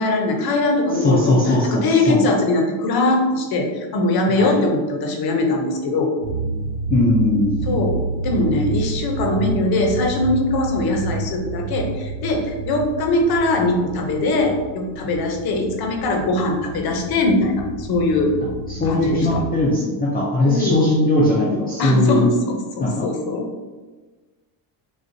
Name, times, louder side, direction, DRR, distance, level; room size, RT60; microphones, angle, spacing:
voice 1, 0.0-6.1 7.7-18.4 18.8-19.4 20.5-20.8 21.8-23.5, left 2 dB, 50° left, 2 dB, 0.7 m, -21 dB
voice 2, 1.0-2.2 4.3-4.6 6.9-7.6 18.7-22.3 22.8-23.1, left 2 dB, 20° left, -6 dB, 0.3 m, -19 dB
sound 1, 6.2-19.4, right 3 dB, 85° right, 1.4 m, -29 dB
6.3 x 2.1 x 2.6 m, 1.3 s
cardioid pair, 170°, 49 cm